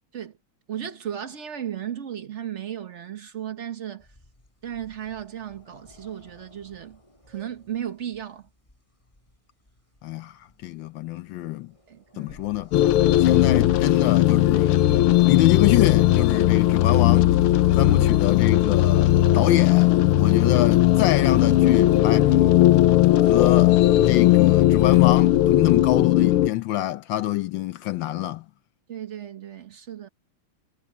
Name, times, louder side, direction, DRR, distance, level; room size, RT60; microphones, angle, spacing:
voice 1, 0.7-4.1 4.6-7.0 7.3-8.5 11.9-12.4 20.2-20.4 28.9-30.1, right 10 dB, 55° right, 0.8 m, -35 dB
sound 1, 4.0-9.4 9.7-10.0 10.5-10.6 11.5-14.8 15.0-21.3 21.9-22.0 22.3-22.6 22.9-23.5, left 2 dB, 15° left, 4.2 m, -52 dB
voice 2, 10.0-11.7 12.2-12.7 13.2-14.8 15.3-17.3 17.7-22.3 22.9-23.8 24.0-28.4, left 14 dB, 70° left, 1.2 m, -26 dB
sound 2, 12.3-20.0, left 4 dB, 40° left, 1.6 m, -42 dB
sound 3, 12.7-26.5, left 14 dB, 85° left, 1.6 m, -18 dB
omnidirectional pair, 2.4 m